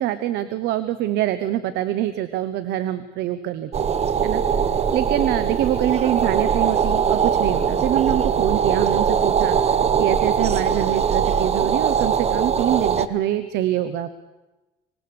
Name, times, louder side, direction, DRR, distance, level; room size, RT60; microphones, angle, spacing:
voice 1, 0.0-3.8 4.2-4.4 4.9-9.6 10.0-14.1, right 12 dB, 80° right, 12 dB, 1.0 m, -25 dB
sound 1, 3.7-13.1, right 7 dB, 40° right, 1.1 m, -21 dB
25.0 x 19.5 x 6.9 m, 1.1 s
cardioid pair, 110°, 17 cm